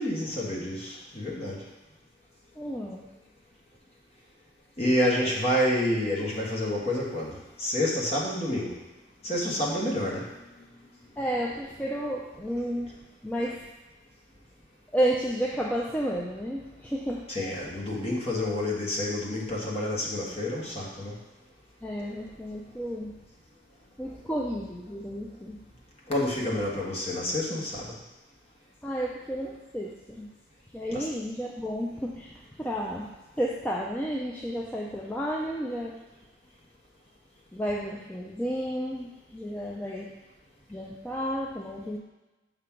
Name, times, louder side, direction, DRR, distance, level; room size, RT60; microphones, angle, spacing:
voice 1, 0.0-1.6 4.8-8.8 9.2-10.3 17.3-21.1 26.1-27.9 30.9-31.1, left 1 dB, 35° left, -4 dB, 1.3 m, -28 dB
voice 2, 2.6-3.1 11.2-12.9 13.2-13.6 14.9-17.3 21.8-23.1 24.0-25.6 26.5-26.6 28.8-30.3 30.7-33.1 33.4-36.0 37.5-40.1 40.7-42.0, equal, 10° left, -3 dB, 0.4 m, -32 dB
5.8 x 3.7 x 5.8 m, 1.1 s
head